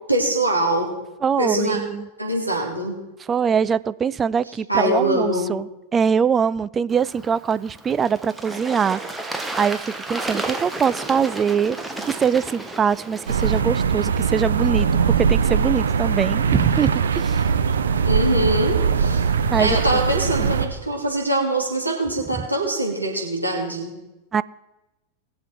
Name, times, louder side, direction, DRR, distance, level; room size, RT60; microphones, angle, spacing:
voice 1, 0.1-0.9 1.4-1.8 2.2-3.0 4.7-5.5 18.1-19.3 19.6-23.9, right 1 dB, 90° right, -2 dB, 2.8 m, -23 dB
voice 2, 1.2-2.1 3.2-11.8 12.1-14.9 15.2-17.4 19.5-19.8 20.4-20.5 22.3-22.5 24.3-24.4, right 7 dB, 20° right, 17 dB, 0.4 m, -23 dB
Bird / Water, 6.9-13.6, right 2 dB, 5° right, 1.2 m, -32 dB
sound 1, 13.3-20.7, right 6 dB, 70° right, 0.9 m, -21 dB
20.5 x 7.5 x 4.6 m, 0.99 s
figure-of-eight pair, 90°, 0 cm